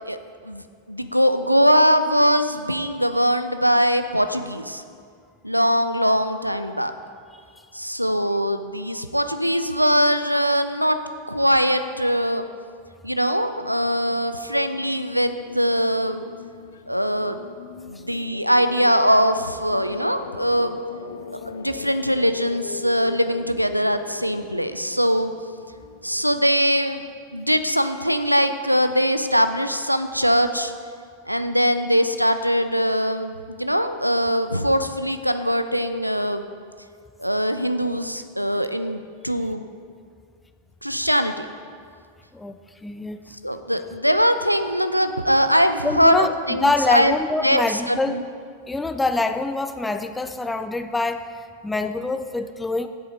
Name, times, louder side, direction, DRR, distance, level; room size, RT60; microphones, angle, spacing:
voice 1, 0.9-4.8 5.4-6.9 7.7-11.0 11.3-12.4 13.0-16.3 16.9-17.4 17.9-20.8 21.5-25.3 26.0-27.0 27.3-30.7 31.3-36.5 37.2-39.7 40.8-41.5 43.4-47.1 47.4-48.2, equal, 90° right, 9 dB, 0.5 m, -21 dB
sound 1, 13.6-26.2, left 6 dB, 65° left, 0.5 m, -40 dB
voice 2, 42.8-43.2 45.8-48.2 48.7-51.3 51.6-52.9, left 2 dB, 10° left, 9 dB, 0.5 m, -25 dB
8.2 x 7.6 x 5.2 m, 2.2 s
figure-of-eight pair, 90°, 0 cm